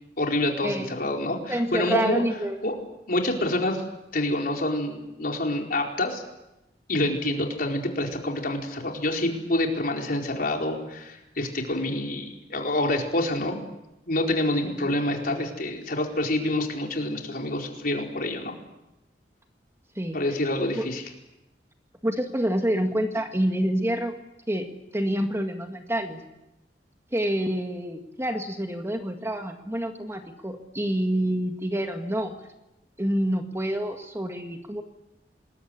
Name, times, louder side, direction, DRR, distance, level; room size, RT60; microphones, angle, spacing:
voice 1, 0.2-2.2 2.6-2.7 3.1-3.8 4.1-6.2 6.9-13.6 14.1-18.5 20.1-21.0, left 1 dB, 55° left, 2 dB, 4.5 m, -27 dB
voice 2, 1.5-2.6 14.6-14.9 20.0-20.2 20.7-20.9 22.0-24.1 24.5-26.2 27.1-32.3 33.0-34.8, right 1 dB, 15° right, 5 dB, 1.8 m, -27 dB
26.5 x 21.0 x 8.3 m, 0.93 s
head